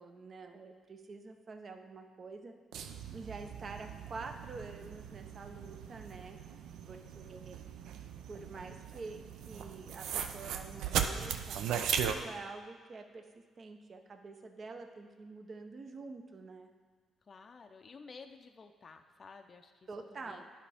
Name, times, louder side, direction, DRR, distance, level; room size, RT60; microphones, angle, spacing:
voice 1, 0.0-2.6 3.1-6.4 6.9-7.6 8.3-16.7 19.9-20.4, right 3 dB, 45° right, 6 dB, 0.7 m, -47 dB
sound 1, 2.7-12.1, right 8 dB, 85° right, 0.4 m, -38 dB
voice 2, 7.0-7.5 17.3-20.4, left 4 dB, 40° left, 6 dB, 0.4 m, -54 dB
11.0 x 5.0 x 3.4 m, 1.5 s
cardioid pair, 90°, 0 cm